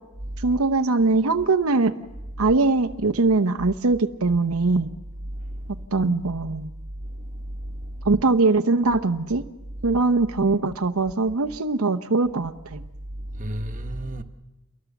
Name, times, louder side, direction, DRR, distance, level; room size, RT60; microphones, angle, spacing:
voice 1, 0.4-1.9 2.4-4.9 5.9-6.7 8.0-9.4 9.8-12.8, right 3 dB, 75° right, 0.8 m, -21 dB
voice 2, 13.3-14.2, right 1 dB, 35° right, 1.3 m, -32 dB
28.5 x 22.5 x 7.1 m
head